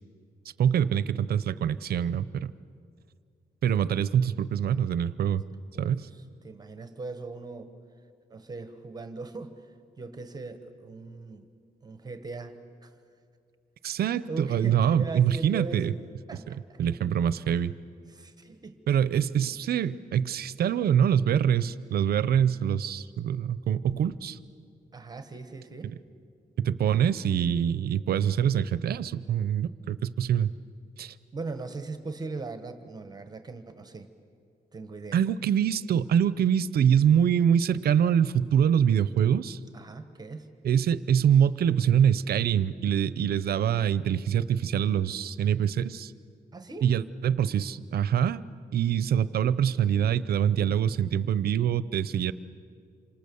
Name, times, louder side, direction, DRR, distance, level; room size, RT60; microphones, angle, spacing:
voice 1, 0.6-2.5 3.6-5.4 5.8-6.1 13.8-15.9 16.5-17.7 18.9-24.4 25.8-25.9 26.6-30.5 31.0-31.1 35.1-39.6 40.6-46.1 46.8-48.4 48.7-52.3, right 9 dB, 70° right, 16 dB, 0.7 m, -25 dB
voice 2, 5.7-7.7 8.3-9.7 10.0-11.4 11.8-12.9 14.3-16.0 16.3-17.1 18.1-18.8 19.4-19.5 24.9-26.0 31.3-34.1 34.7-35.2 39.7-40.5 46.5-46.9, right 3 dB, 25° right, 9 dB, 1.3 m, -40 dB
27.5 x 26.0 x 7.0 m, 2.3 s
wide cardioid pair, 145°, 16 cm